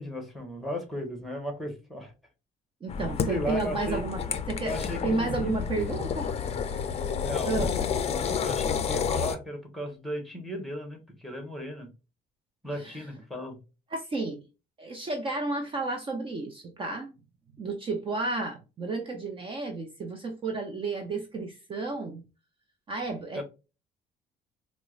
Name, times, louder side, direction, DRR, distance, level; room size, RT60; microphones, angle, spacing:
voice 1, 0.0-2.1 3.3-4.0 4.6-6.0 7.0-11.9 12.6-13.6 23.3-23.4, equal, ahead, 1.1 m, -36 dB
voice 2, 2.8-4.2 4.5-4.8 5.0-6.4 7.4-7.8 12.7-13.1 13.9-14.4 14.8-17.1 17.6-22.2 22.9-23.4, right 3 dB, 30° right, 0.6 m, -32 dB
sound 1, 2.9-9.4, left 7 dB, 40° left, 0.5 m, -30 dB
4.4 x 2.1 x 2.4 m
cardioid pair, 110°, 17 cm